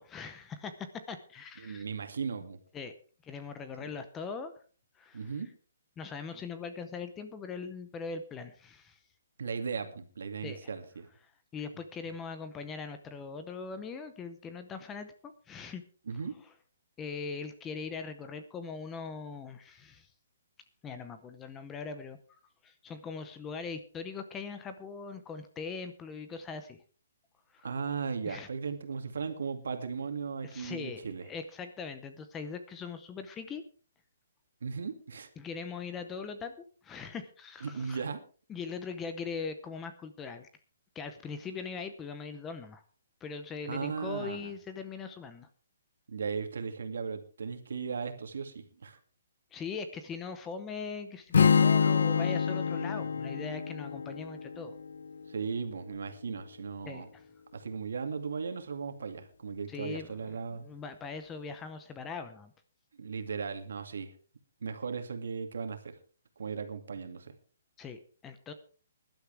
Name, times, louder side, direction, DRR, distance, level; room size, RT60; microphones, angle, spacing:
voice 1, 0.0-1.8 2.7-2.9 3.2-4.5 5.0-5.2 6.0-9.0 10.4-10.7 11.5-15.1 15.5-15.8 17.0-20.1 20.8-22.2 22.6-26.8 27.5-27.7 28.3-28.5 30.4-33.6 35.4-36.6 36.8-38.0 38.5-40.5 40.9-42.8 43.2-45.5 49.5-54.7 56.9-57.2 59.7-62.5 67.8-68.5, left 5 dB, 10° left, 9 dB, 0.7 m, -41 dB
voice 2, 1.6-2.6 3.8-3.9 5.1-5.5 9.4-11.1 16.1-16.4 27.6-31.3 34.6-35.3 37.6-38.2 43.7-44.5 46.1-49.0 55.3-57.1 57.5-60.7 63.0-64.1 64.6-65.9 66.4-67.3, right 5 dB, 70° right, 7 dB, 2.3 m, -37 dB
Strum, 51.3-55.5, left 6 dB, 70° left, 0.8 m, -27 dB
19.5 x 11.5 x 3.4 m, 0.38 s
hypercardioid pair, 175°, 0 cm